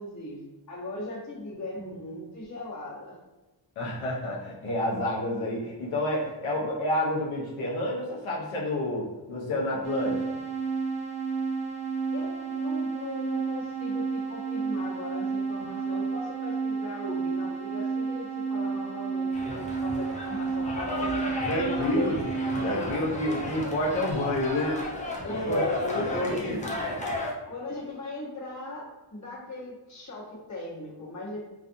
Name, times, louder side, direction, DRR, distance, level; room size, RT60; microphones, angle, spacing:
voice 1, 0.0-3.1 12.1-21.1 21.8-22.2 22.9-23.0 25.2-26.8 27.5-28.9 29.1-31.4, left 2 dB, 35° left, -7 dB, 1.1 m, -38 dB
voice 2, 3.8-10.4 21.4-22.2 22.6-24.9 25.2-25.6 25.9-26.6, left 1 dB, 85° left, -4 dB, 0.7 m, -29 dB
sound 1, 9.8-22.7, right 5 dB, 45° right, 0.5 m, -31 dB
sound 2, 19.3-27.3, left 2 dB, 15° left, 0.5 m, -34 dB
2.4 x 2.4 x 2.6 m, 1.1 s
cardioid pair, 75°, 48 cm